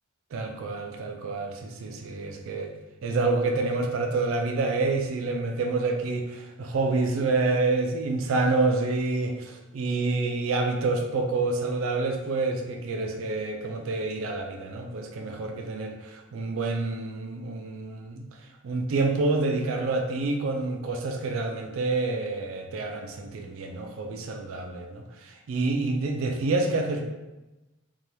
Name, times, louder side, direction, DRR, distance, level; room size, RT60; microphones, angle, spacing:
voice 1, 0.3-2.7 3.0-18.3 18.6-27.0, right 3 dB, 75° right, 3 dB, 0.4 m, -28 dB
2.8 x 2.2 x 3.1 m, 1.0 s
head